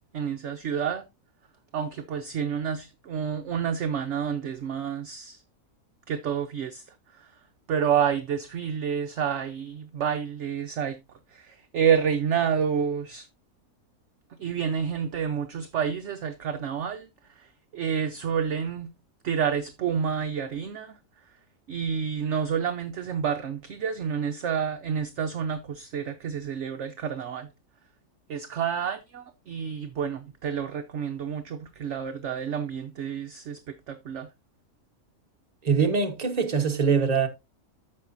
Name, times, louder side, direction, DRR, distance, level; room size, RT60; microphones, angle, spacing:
voice 1, 0.1-1.0 1.7-5.4 6.1-7.4 7.7-11.0 11.3-13.3 14.4-18.9 19.2-21.0 21.7-27.5 28.3-34.3, right 7 dB, 60° right, 0.9 m, -29 dB
voice 2, 35.6-37.3, right 5 dB, 30° right, 1.2 m, -23 dB
14.0 x 5.5 x 2.6 m
omnidirectional pair, 1.6 m